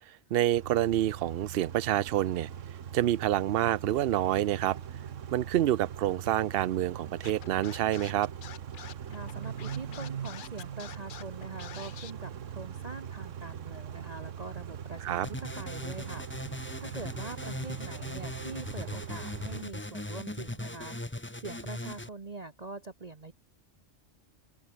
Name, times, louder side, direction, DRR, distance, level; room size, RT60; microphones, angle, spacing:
voice 1, 0.1-2.5 2.9-4.8 5.3-8.3 15.0-15.3, right 13 dB, 60° right, 0.7 m, -27 dB
Car / Idling / Accelerating revving vroom, 0.5-19.6, right 8 dB, 75° right, 1.4 m, -41 dB
Scratching (performance technique), 7.2-12.1, left 10 dB, 55° left, 0.6 m, -46 dB
voice 2, 9.1-23.3, right 3 dB, 35° right, 1.1 m, -44 dB
sound 1, 15.2-22.1, left 1 dB, 10° left, 1.1 m, -39 dB
open air
omnidirectional pair, 1.3 m